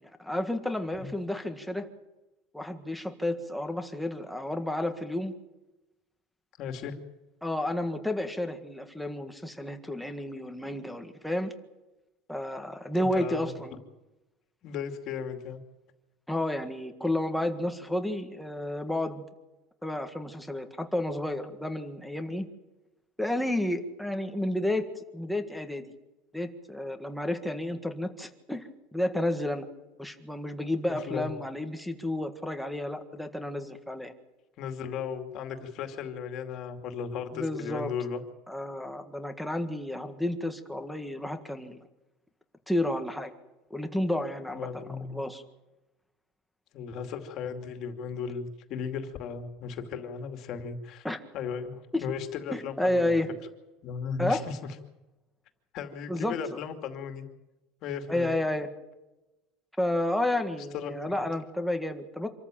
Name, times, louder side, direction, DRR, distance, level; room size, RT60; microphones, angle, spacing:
voice 1, 0.0-1.9 2.5-5.3 7.4-11.5 12.3-13.8 16.3-19.2 19.8-22.5 23.2-25.9 26.3-29.6 30.0-34.1 37.3-37.9 38.5-41.8 42.7-43.3 43.7-44.8 45.1-45.4 51.0-51.2 51.9-52.0 52.5-53.3 54.2-54.4 56.1-56.6 58.1-58.7 59.8-62.3, left 1 dB, ahead, 5 dB, 1.7 m, -31 dB
voice 2, 6.6-7.0 13.0-13.5 14.6-15.6 30.8-31.3 34.6-38.2 44.5-45.2 46.7-51.1 51.3-53.2 53.8-54.6 55.7-57.3 57.8-58.3 60.7-61.2, left 6 dB, 40° left, 6 dB, 2.5 m, -36 dB
26.0 x 14.0 x 9.1 m, 1.0 s
cardioid pair, 165°, 0 cm